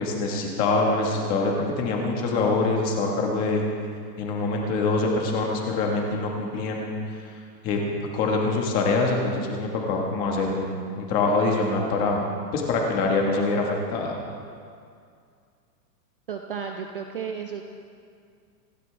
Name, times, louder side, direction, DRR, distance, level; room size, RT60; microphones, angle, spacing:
voice 1, 0.0-3.6 4.2-7.3 7.6-7.8 8.1-12.2 12.5-14.1, left 3 dB, 15° left, 0 dB, 1.4 m, -25 dB
voice 2, 16.3-17.6, right 7 dB, 35° right, 4 dB, 0.5 m, -33 dB
28.0 x 12.0 x 3.4 m, 2.3 s
supercardioid pair, 180°, 50 cm